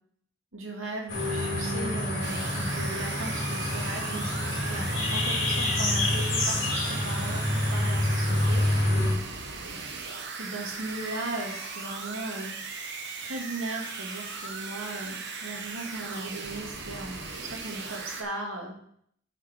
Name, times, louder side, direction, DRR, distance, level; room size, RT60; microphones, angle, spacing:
voice 1, 0.5-6.6 6.9-8.6 10.4-12.6 13.2-18.8, right 2 dB, 85° right, 0 dB, 2.2 m, -37 dB
sound 1, 1.1-9.1, left 1 dB, 65° left, 3.3 m, -27 dB
sound 2, 2.2-18.2, right 4 dB, 60° right, 1.2 m, -38 dB
9.3 x 5.9 x 4.4 m, 0.67 s
head